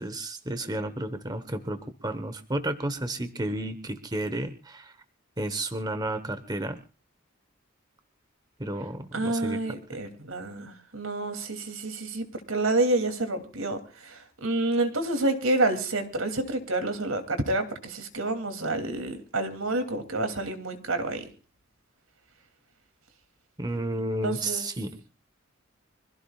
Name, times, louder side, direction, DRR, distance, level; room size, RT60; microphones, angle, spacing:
voice 1, 0.0-5.0 5.4-6.8 8.6-9.6 9.9-10.0 23.6-24.9, right 1 dB, 20° right, 10 dB, 1.2 m, -32 dB
voice 2, 9.1-21.3 24.2-24.7, right 2 dB, 80° right, 7 dB, 2.9 m, -28 dB
25.0 x 16.0 x 2.4 m, 0.34 s
head